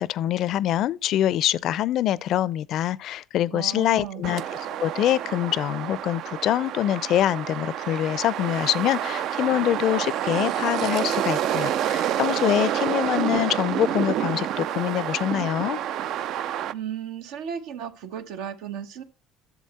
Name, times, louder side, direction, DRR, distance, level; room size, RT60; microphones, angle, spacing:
voice 1, 0.0-4.4 4.8-15.8, left 12 dB, 60° left, 0.4 m, -24 dB
voice 2, 3.5-4.3 12.9-13.0 16.7-19.0, right 9 dB, 80° right, 1.1 m, -35 dB
sound 1, 4.2-16.7, right 10 dB, 65° right, 0.4 m, -28 dB
11.0 x 7.1 x 4.1 m
supercardioid pair, 95°, 0 cm